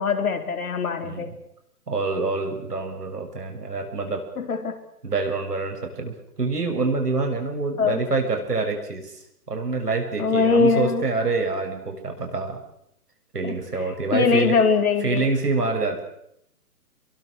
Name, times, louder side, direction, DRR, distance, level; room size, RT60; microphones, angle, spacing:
voice 1, 0.0-1.3 4.4-4.8 7.8-8.0 10.2-11.0 13.4-13.6 14.1-15.3, left 5 dB, 65° left, 6 dB, 4.5 m, -22 dB
voice 2, 1.0-1.4 1.9-4.2 5.0-9.2 9.5-12.6 13.3-14.5 15.0-16.0, right 3 dB, 90° right, 3 dB, 6.9 m, -26 dB
26.5 x 23.0 x 6.6 m, 0.76 s
hypercardioid pair, 160°, 46 cm